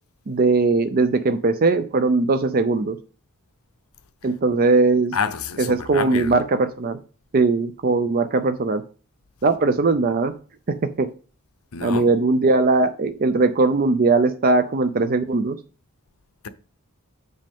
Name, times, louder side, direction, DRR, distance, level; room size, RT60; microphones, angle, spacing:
voice 1, 0.3-3.0 4.2-5.2 5.6-7.0 7.3-8.8 9.4-10.3 10.7-11.1 11.8-15.6, right 3 dB, 40° right, 0.5 m, -20 dB
voice 2, 5.1-6.3 11.7-12.1, left 6 dB, 75° left, 0.8 m, -28 dB
7.5 x 6.3 x 3.6 m
head